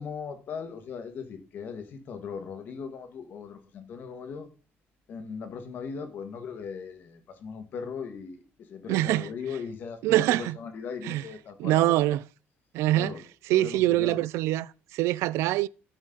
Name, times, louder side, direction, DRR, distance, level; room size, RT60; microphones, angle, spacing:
voice 1, 0.0-4.5 5.1-12.1 12.9-13.2 13.5-14.2, left 6 dB, 45° left, 1.6 m, -38 dB
voice 2, 8.9-9.3 10.0-10.6 11.0-11.2 11.6-12.2 12.7-13.1 13.5-15.7, right 16 dB, 85° right, 0.4 m, -24 dB
13.0 x 6.4 x 3.9 m
cardioid pair, 175°, 5 cm